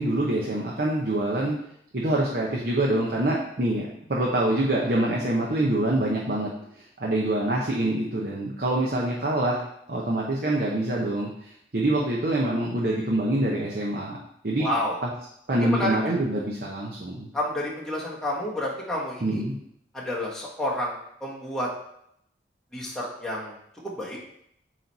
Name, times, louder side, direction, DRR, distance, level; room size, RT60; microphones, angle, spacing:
voice 1, 0.0-1.5 1.9-6.5 7.0-9.6 9.9-14.2 14.4-14.7 15.0-15.1 15.5-17.3 19.2-19.5, right 1 dB, 55° right, -3 dB, 0.9 m, -25 dB
voice 2, 14.6-15.0 15.5-16.1 17.3-19.4 19.9-21.7 22.7-23.5 23.8-24.2, left 1 dB, 5° left, -5 dB, 1.2 m, -30 dB
7.9 x 3.2 x 4.1 m, 0.73 s
head